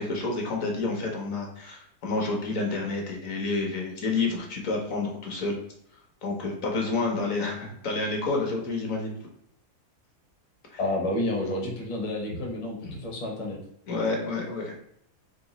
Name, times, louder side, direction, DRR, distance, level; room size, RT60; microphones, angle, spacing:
voice 1, 0.0-5.6 6.2-9.1 10.7-10.8 12.8-13.0 13.9-14.8, left 3 dB, 60° left, 0 dB, 1.1 m, -29 dB
voice 2, 10.8-13.6, left 1 dB, 35° left, -1 dB, 0.6 m, -30 dB
3.9 x 2.2 x 3.9 m, 0.71 s
omnidirectional pair, 1.7 m